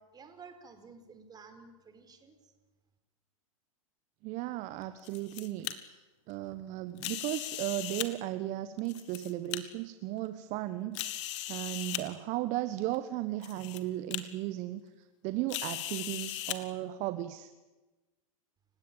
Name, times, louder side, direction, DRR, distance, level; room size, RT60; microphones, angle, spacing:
voice 1, 0.0-2.5, right 5 dB, 20° right, 7 dB, 4.7 m, -53 dB
voice 2, 4.2-6.0 6.3-17.5, right 15 dB, 45° right, 12 dB, 1.3 m, -36 dB
sound 1, 4.8-5.7 7.0-8.1 8.8-9.6 10.2-10.3 10.9-12.0 12.9-13.0 13.4-13.8 14.1-14.2 15.5-16.6, left 14 dB, 55° left, 2.3 m, -37 dB
30.0 x 17.0 x 8.9 m, 1.2 s
hypercardioid pair, 105°, 18 cm